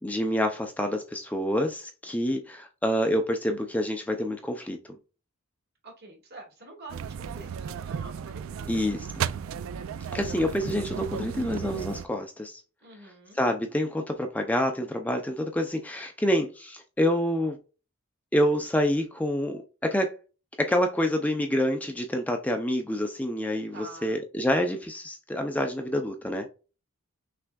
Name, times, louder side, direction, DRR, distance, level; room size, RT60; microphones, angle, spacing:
voice 1, 0.0-4.8 8.7-9.1 10.1-12.6 13.3-17.6 18.3-20.1 20.6-26.5, equal, 5° left, 0.5 m, -27 dB
voice 2, 5.8-8.9 12.8-13.4 23.7-24.2, right 2 dB, 50° right, 1.9 m, -47 dB
sound 1, 6.9-12.1, right 7 dB, 70° right, 0.3 m, -34 dB
5.9 x 3.3 x 2.3 m
head